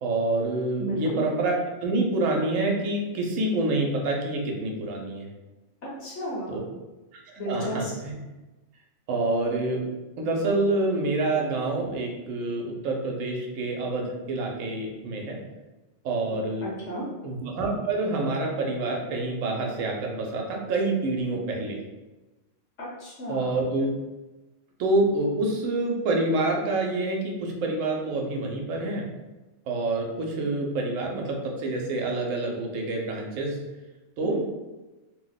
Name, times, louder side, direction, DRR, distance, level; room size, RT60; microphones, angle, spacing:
voice 1, 0.0-5.3 6.5-6.6 7.1-7.2 7.5-8.1 9.1-9.8 10.2-15.4 16.0-16.6 17.2-21.8 23.3-23.9 24.8-29.0 29.7-33.6 34.2-34.4, right 2 dB, 75° right, 0 dB, 1.0 m, -27 dB
voice 2, 0.8-1.2 5.8-6.7 7.4-7.9 16.6-17.1 22.8-23.7 34.2-34.4, equal, 65° left, -6 dB, 1.0 m, -33 dB
2.6 x 2.1 x 3.8 m, 1.1 s
omnidirectional pair, 1.4 m